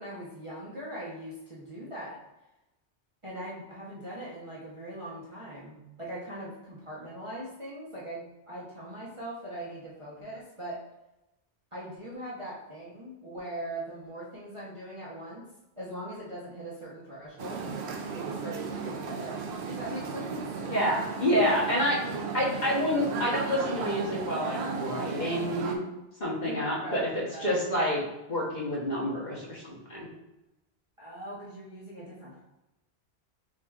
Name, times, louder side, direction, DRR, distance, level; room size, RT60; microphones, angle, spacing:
voice 1, 0.0-2.2 3.2-10.8 11.7-15.5 15.8-17.6 18.1-20.7 26.4-27.6 31.0-32.4, right 1 dB, 30° right, -8 dB, 1.0 m, -41 dB
sound 1, 17.4-25.8, right 5 dB, 80° right, 0.9 m, -35 dB
voice 2, 20.7-22.0 22.3-25.8 26.2-28.0 28.3-30.1, equal, 45° left, -4 dB, 1.2 m, -28 dB
6.0 x 2.9 x 2.4 m, 0.95 s
omnidirectional pair, 1.1 m